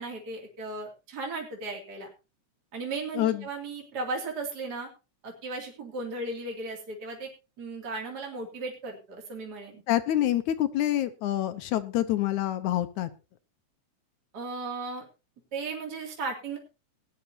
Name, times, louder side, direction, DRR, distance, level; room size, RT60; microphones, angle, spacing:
voice 1, 0.0-2.1 2.7-4.9 5.2-7.3 7.6-9.8 14.3-15.0 15.5-16.6, right 3 dB, 30° right, 1 dB, 3.0 m, -36 dB
voice 2, 9.9-13.1, left 13 dB, 75° left, 10 dB, 2.1 m, -27 dB
19.0 x 10.5 x 2.8 m, 0.29 s
omnidirectional pair, 3.7 m